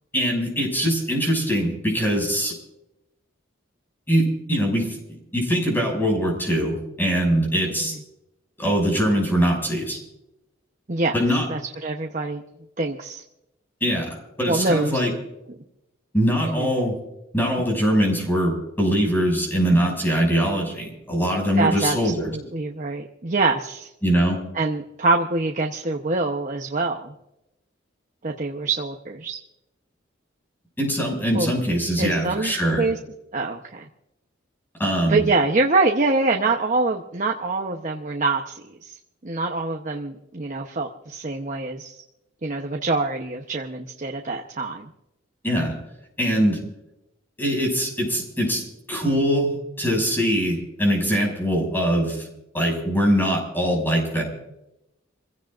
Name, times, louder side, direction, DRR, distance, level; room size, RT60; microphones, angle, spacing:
voice 1, 0.1-2.5 4.1-5.0 5.3-7.9 8.6-10.0 11.1-11.5 13.8-14.1 14.4-15.1 16.1-16.9 17.3-22.3 24.0-24.4 30.8-32.9 34.8-35.2 45.4-45.7 46.2-46.6 47.4-52.3 52.5-54.2, equal, 10° left, -1 dB, 6.5 m, -22 dB
voice 2, 11.5-12.4 12.8-13.2 14.5-15.0 16.5-16.7 21.6-22.0 22.2-23.9 24.5-27.1 28.2-29.4 31.3-31.5 32.0-33.0 33.3-33.9 35.1-38.9 39.2-42.0 42.4-44.9, right 3 dB, 40° right, 2 dB, 0.9 m, -25 dB
27.5 x 16.5 x 2.6 m, 0.88 s
head